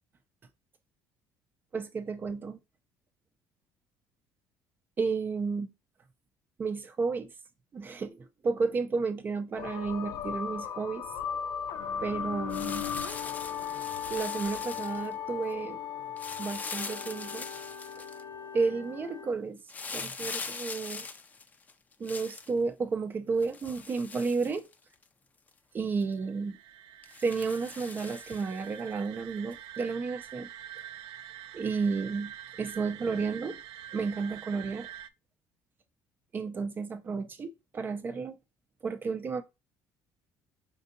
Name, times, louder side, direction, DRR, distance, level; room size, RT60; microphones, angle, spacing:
voice 1, 1.7-2.6 5.0-5.7 6.6-7.3 7.7-11.4 12.0-12.9 14.1-15.8 16.4-17.5 18.5-19.6 19.9-21.1 22.0-24.7 25.7-26.6 27.2-30.5 31.5-32.3 32.6-33.6 33.9-34.9 36.3-38.3 38.8-39.4, right 4 dB, 30° right, 0.5 m, -32 dB
sound 1, 9.6-19.3, left 8 dB, 65° left, 0.6 m, -37 dB
sound 2, 12.5-15.1 16.2-18.2 19.7-22.5 23.4-25.0 25.5-25.6 26.0-26.1 27.0-28.7 29.5-29.6, left 4 dB, 25° left, 0.5 m, -41 dB
sound 3, 26.0-35.1, right 10 dB, 90° right, 0.4 m, -46 dB
5.3 x 2.7 x 2.6 m
cardioid pair, 130°, 7 cm